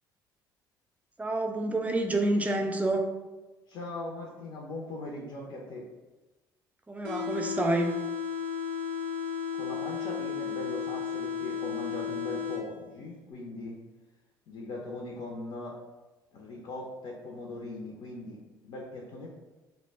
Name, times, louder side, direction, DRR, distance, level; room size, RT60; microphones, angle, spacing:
voice 1, 1.2-3.0 6.9-7.9, right 2 dB, 15° right, 3 dB, 0.4 m, -28 dB
voice 2, 3.7-5.9 9.5-13.8 14.5-15.8 16.3-19.3, left 2 dB, 55° left, -1 dB, 0.5 m, -40 dB
sound 1, 7.0-13.0, left 7 dB, 75° right, 0.4 m, -34 dB
2.1 x 2.0 x 3.3 m, 1.1 s
hypercardioid pair, 50°, 11 cm